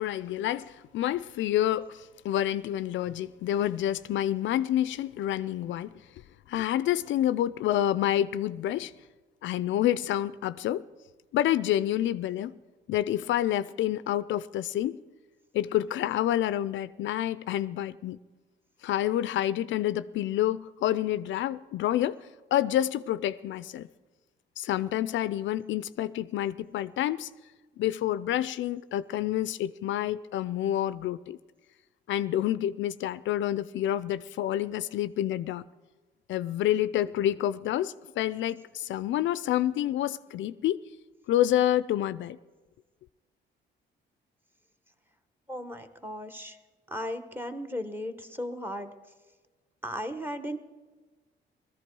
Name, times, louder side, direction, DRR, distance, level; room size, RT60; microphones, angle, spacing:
voice 1, 0.0-5.9 6.5-8.9 9.4-10.8 11.3-12.5 12.9-15.0 15.5-18.2 18.8-22.2 22.5-23.9 24.6-27.3 27.8-31.4 32.1-35.6 36.3-40.8 41.3-42.4, left 12 dB, 70° left, 0.4 m, -28 dB
voice 2, 45.5-46.6 46.9-48.9 49.8-50.6, equal, 10° right, 1.1 m, -36 dB
18.5 x 14.0 x 4.6 m
cardioid pair, 90°, 20 cm